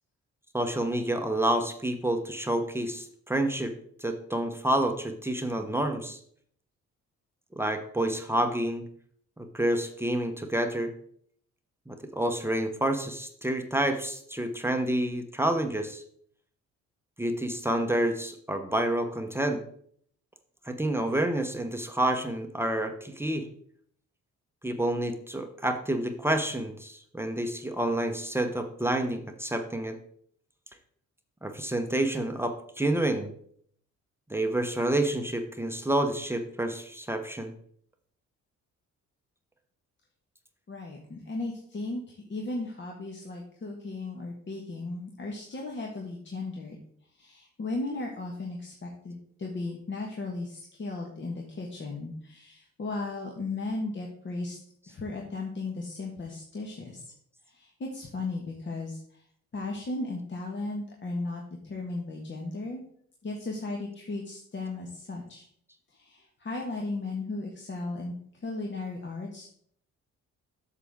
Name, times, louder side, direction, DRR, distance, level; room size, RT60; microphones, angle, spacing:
voice 1, 0.5-3.7 4.0-6.2 7.5-8.9 9.4-10.9 11.9-16.0 17.2-19.6 20.6-23.5 24.6-30.0 31.4-33.3 34.3-37.5, right 1 dB, 10° right, 5 dB, 0.9 m, -29 dB
voice 2, 40.7-46.8 47.1-54.6 54.9-57.1 57.5-59.2 59.5-62.8 63.2-65.5 65.9-69.5, left 2 dB, 40° left, 0 dB, 1.4 m, -36 dB
8.2 x 6.7 x 3.6 m, 0.63 s
cardioid pair, 90°, 30 cm